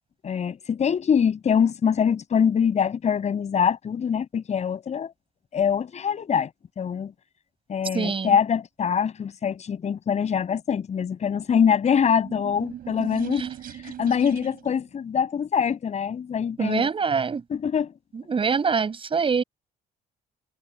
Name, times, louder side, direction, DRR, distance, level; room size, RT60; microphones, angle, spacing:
voice 1, 0.2-5.1 5.5-6.5 6.8-7.1 7.7-13.5 13.8-16.9 17.5-17.9, left 7 dB, 40° left, 6.6 m, -24 dB
voice 2, 7.9-8.4 13.4-13.5 16.6-17.4 18.1-19.4, right 5 dB, 30° right, 7.8 m, -24 dB
sound 1, 11.8-14.8, right 10 dB, 60° right, 6.5 m, -39 dB
cardioid pair, 110°, 17 cm